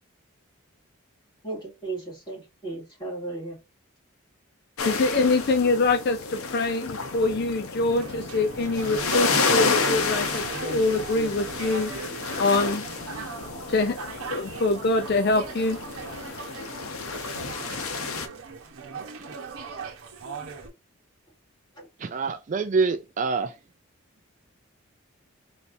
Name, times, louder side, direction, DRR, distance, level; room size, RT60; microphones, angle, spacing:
voice 1, 1.4-3.6 21.7-21.9, right 3 dB, 20° left, 2.5 m, -35 dB
sound 1, 4.8-18.3, left 4 dB, 85° left, 0.8 m, -30 dB
voice 2, 4.8-11.9 12.4-12.9 13.7-14.0 14.3-15.8, left 3 dB, 45° left, 0.4 m, -24 dB
sound 2, 7.9-20.7, right 4 dB, 80° right, 1.0 m, -38 dB
voice 3, 12.4-12.9 17.6-17.8 22.0-23.6, right 4 dB, 35° right, 0.3 m, -27 dB
4.0 x 3.3 x 2.6 m
head